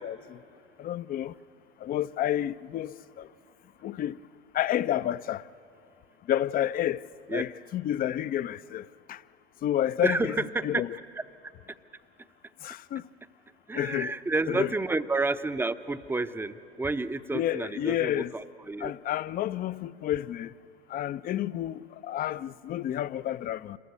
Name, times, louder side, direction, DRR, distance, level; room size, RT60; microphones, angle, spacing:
voice 1, 0.0-0.4 0.8-1.3 1.8-3.3 3.8-4.2 4.5-5.5 6.3-7.0 7.3-9.2 9.6-11.0 12.6-13.1 13.7-14.1 14.5-14.7 17.3-18.3 18.8-20.5 20.9-23.8, left 11 dB, 25° left, 0.5 m, -30 dB
voice 2, 10.0-10.8 13.7-18.9, right 3 dB, 5° right, 0.7 m, -30 dB
26.5 x 21.5 x 8.1 m
hypercardioid pair, 90°, 33 cm